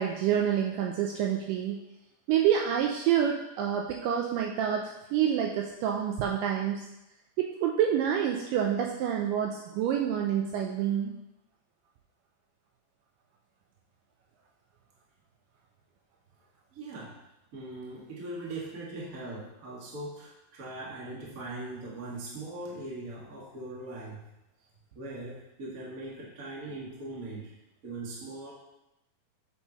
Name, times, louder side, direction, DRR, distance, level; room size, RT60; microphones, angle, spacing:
voice 1, 0.0-1.8 2.3-6.9 7.4-11.1, right 9 dB, 80° right, 1 dB, 2.1 m, -27 dB
voice 2, 16.7-17.2 17.5-24.2 24.9-27.5 27.8-28.5, right 2 dB, 35° right, -5 dB, 1.6 m, -40 dB
8.3 x 7.2 x 3.0 m, 0.91 s
omnidirectional pair, 4.1 m